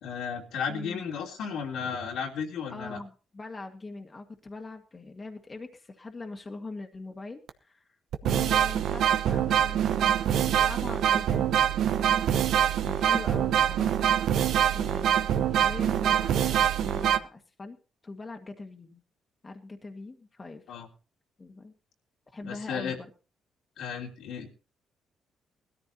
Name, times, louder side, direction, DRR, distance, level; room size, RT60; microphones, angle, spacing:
voice 1, 0.0-3.0 20.7-20.9 22.4-23.0 23.8-24.5, left 6 dB, 85° left, -1 dB, 3.3 m, -34 dB
voice 2, 0.7-1.0 2.7-7.8 8.2-10.2 10.5-11.5 11.9-12.3 12.8-14.1 14.7-17.8 18.0-19.0 19.4-20.6 21.4-21.7 22.3-23.1, left 3 dB, 25° left, 4 dB, 1.9 m, -42 dB
sound 1, 7.5-7.6 8.1-17.2, right 10 dB, 75° right, 0.9 m, -24 dB
20.5 x 13.5 x 2.8 m, 0.35 s
cardioid pair, 90°, 0 cm